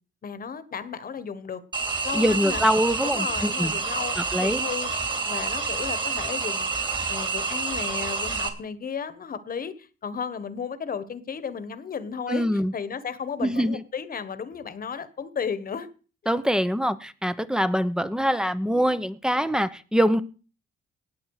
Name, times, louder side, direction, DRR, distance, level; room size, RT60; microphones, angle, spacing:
voice 1, 0.2-1.6 2.0-2.6 3.0-4.9 5.2-6.7 7.1-15.9, left 6 dB, 45° left, 14 dB, 1.4 m, -34 dB
sound 1, 1.7-8.5, right 4 dB, 25° right, 2.9 m, -28 dB
voice 2, 2.1-3.7 4.2-4.6 12.3-12.7 13.4-13.8 16.3-20.2, equal, 5° right, 13 dB, 0.9 m, -24 dB
18.5 x 7.3 x 4.9 m, 0.37 s
cardioid pair, 90°, 20 cm